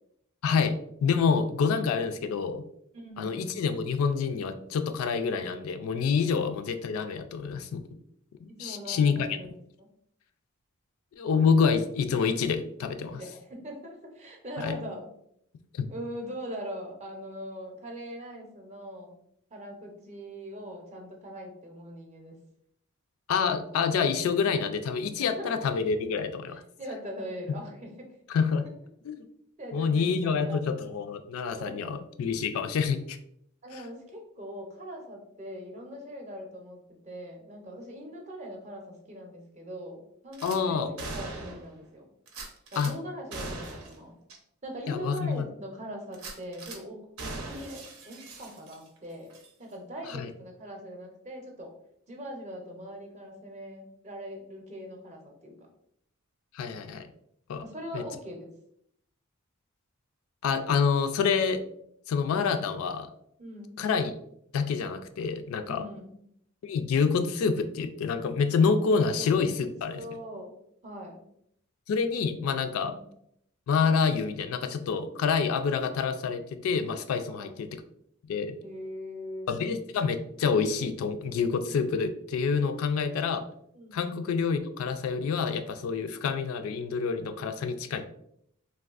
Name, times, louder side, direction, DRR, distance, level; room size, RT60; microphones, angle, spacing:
voice 1, 0.4-2.6 3.2-7.8 8.4-9.3 11.2-13.2 14.6-14.8 15.7-15.9 23.3-26.6 28.3-28.7 29.0-29.2 29.7-33.2 40.4-40.9 42.8-42.9 44.9-45.4 50.2-50.3 56.5-57.1 57.5-57.6 57.9-58.0 60.4-61.6 62.1-63.1 63.8-64.1 64.5-65.8 66.6-70.0 71.9-72.9 73.7-77.7 78.3-78.6 79.5-83.4 83.9-88.1, left 5 dB, 70° left, 9 dB, 0.3 m, -27 dB
voice 2, 2.9-3.5 8.5-9.9 13.0-15.1 15.9-19.1 19.5-22.4 25.4-25.5 26.8-28.2 29.6-31.0 31.6-32.0 33.6-42.1 42.7-44.2 44.6-49.3 49.6-51.7 52.1-55.7 57.6-58.5 63.4-63.8 65.7-66.2 69.0-69.7 70.0-70.5 70.8-71.2 72.8-73.1 77.3-77.5 78.6-79.5 83.7-84.2 86.0-86.2, equal, 30° right, 1 dB, 0.6 m, -41 dB
Gunshot gunfire / Glass, 40.3-40.6 41.0-41.7 42.3-42.9 43.3-44.0 44.3-44.4 44.9-45.0 46.1-46.8 47.2-49.0 49.3-49.5, right 3 dB, 80° right, 0.7 m, -40 dB
3.4 x 2.3 x 2.4 m, 0.72 s
head